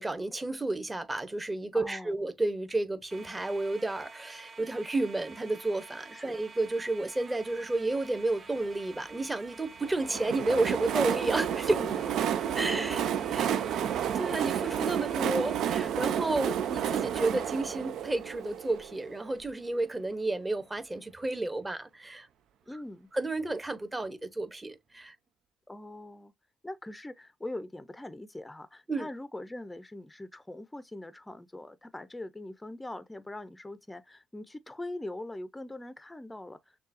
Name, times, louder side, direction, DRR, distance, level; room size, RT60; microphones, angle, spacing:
voice 1, 0.0-11.8 12.5-13.0 13.3-13.5 14.1-22.3 23.1-25.2 28.9-29.1, right 2 dB, 15° right, 1.0 m, -31 dB
voice 2, 1.7-2.2 6.1-6.4 11.7-12.4 12.7-13.0 13.3-13.7 14.6-14.7 22.7-23.1 25.7-26.3 26.6-36.8, left 1 dB, 10° left, 0.6 m, -42 dB
sound 1, 3.1-15.9, right 4 dB, 40° right, 0.9 m, -49 dB
Train, 9.8-19.5, right 9 dB, 70° right, 0.5 m, -31 dB
6.5 x 2.3 x 2.7 m
cardioid pair, 95°, 0 cm